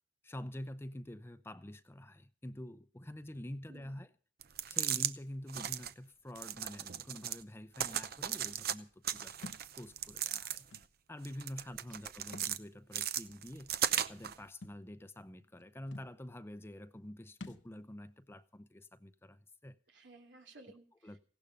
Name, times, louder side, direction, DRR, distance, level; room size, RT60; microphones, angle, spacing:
voice 1, 0.2-4.1 4.7-9.5 9.8-10.7 11.1-13.7 14.1-19.8 21.0-21.2, left 1 dB, 15° left, 0.6 m, -47 dB
voice 2, 3.7-4.0 11.6-11.8 12.0-12.2 19.9-21.2, right 2 dB, 90° right, 3.1 m, -58 dB
sound 1, 4.4-5.1 5.5-5.9 6.3-7.4 7.7-8.7 9.0-10.8 11.2-12.6 12.9-14.3, right 10 dB, 60° right, 0.7 m, -36 dB
Thump thud, 9.4-9.7 10.7-10.8 12.2-12.5 13.0-13.1 14.6-14.8 15.6-15.7 15.9-16.1 17.4-17.7, left 2 dB, 75° left, 0.9 m, -48 dB
16.5 x 12.0 x 5.2 m
head